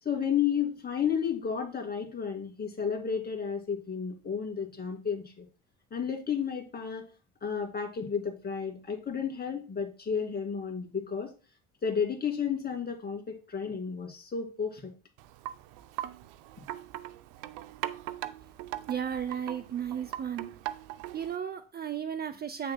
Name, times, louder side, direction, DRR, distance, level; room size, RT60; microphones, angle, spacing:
voice 1, 0.0-5.5 5.9-7.1 7.4-11.3 11.8-14.9, left 7 dB, 30° left, 2.5 m, -32 dB
Wind chime, 15.2-21.4, right 14 dB, 80° right, 0.6 m, -40 dB
voice 2, 18.9-20.5 21.1-22.7, right 8 dB, 30° right, 0.6 m, -34 dB
9.0 x 6.7 x 2.2 m
supercardioid pair, 90°, 31 cm